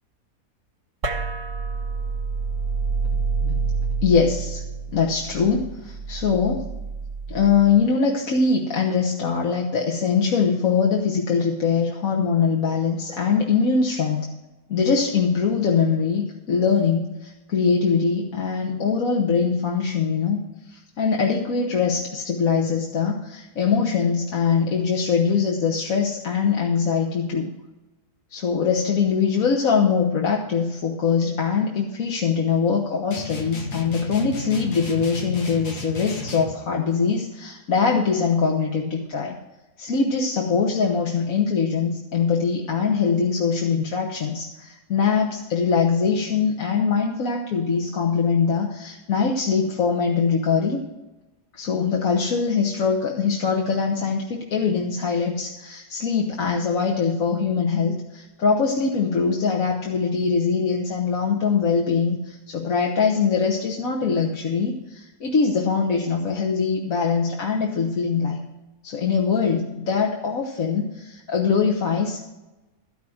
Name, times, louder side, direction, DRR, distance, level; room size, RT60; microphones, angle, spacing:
sound 1, 1.0-7.8, right 4 dB, 55° right, 1.5 m, -28 dB
voice 1, 4.0-4.6 4.9-6.7 7.3-14.3 14.7-20.4 20.7-27.5 28.3-39.3 39.8-50.8 51.5-68.4 68.8-72.2, left 5 dB, 60° left, 0 dB, 1.4 m, -22 dB
sound 2, 33.1-36.6, left 3 dB, 75° left, 1.8 m, -33 dB
13.0 x 6.0 x 7.7 m, 1.1 s
omnidirectional pair, 1.7 m